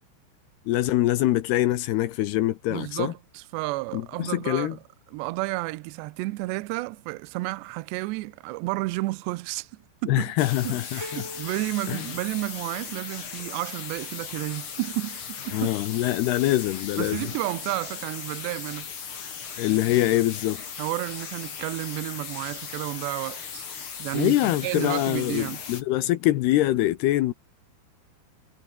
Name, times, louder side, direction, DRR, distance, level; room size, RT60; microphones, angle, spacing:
voice 1, 0.7-3.1 3.9-4.8 10.1-11.3 11.9-12.1 15.5-17.2 19.6-20.6 24.1-27.3, left 15 dB, 80° left, 2.5 m, -24 dB
voice 2, 2.7-4.8 5.1-10.3 10.6-15.7 17.0-18.9 20.8-23.7 24.0-25.6, right 21 dB, 90° right, 2.5 m, -31 dB
sound 1, 10.4-25.8, left 6 dB, 40° left, 2.0 m, -38 dB
sound 2, 11.0-13.0, left 1 dB, 10° left, 0.9 m, -43 dB
omnidirectional pair, 5.8 m